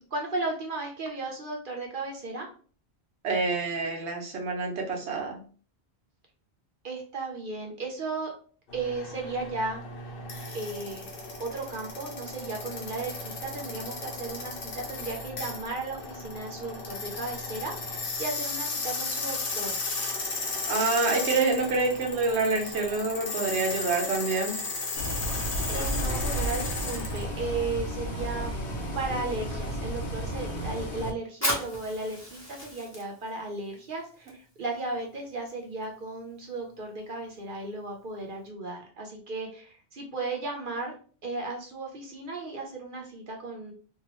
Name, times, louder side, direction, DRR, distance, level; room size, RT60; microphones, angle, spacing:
voice 1, 0.0-2.5 6.8-8.3 8.7-9.9 10.5-11.1 11.4-19.8 25.7-40.9 41.2-43.7, right 3 dB, 55° right, 1 dB, 0.8 m, -35 dB
voice 2, 3.2-5.4 20.7-24.6, right 3 dB, 90° right, 1 dB, 1.1 m, -27 dB
sound 1, 8.7-27.2, left 3 dB, 60° left, 0.9 m, -35 dB
Bus, 25.0-31.1, equal, 85° left, 1.0 m, -32 dB
Fire, 31.3-38.5, left 1 dB, 15° left, 1.0 m, -39 dB
2.7 x 2.3 x 3.0 m, 0.41 s
omnidirectional pair, 1.1 m